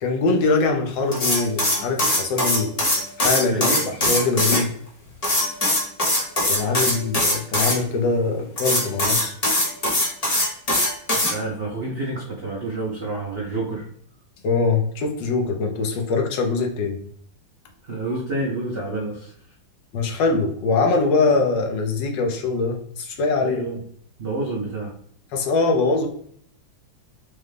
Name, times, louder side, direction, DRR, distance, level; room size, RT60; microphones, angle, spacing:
voice 1, 0.0-2.7 3.2-3.7 4.0-4.7 6.5-9.3 14.4-17.0 19.9-23.6 25.3-26.1, left 3 dB, 75° left, 3 dB, 1.4 m, -22 dB
sound 1, 1.1-4.6 5.2-7.8 8.6-11.3, left 1 dB, 30° left, 0.7 m, -21 dB
voice 2, 3.5-4.1 6.7-6.9 11.1-13.9 17.8-19.3 21.3-21.4 23.4-23.8 24.2-25.0, right 2 dB, 80° right, -4 dB, 0.5 m, -29 dB
5.0 x 2.2 x 3.2 m, 0.63 s
omnidirectional pair, 2.1 m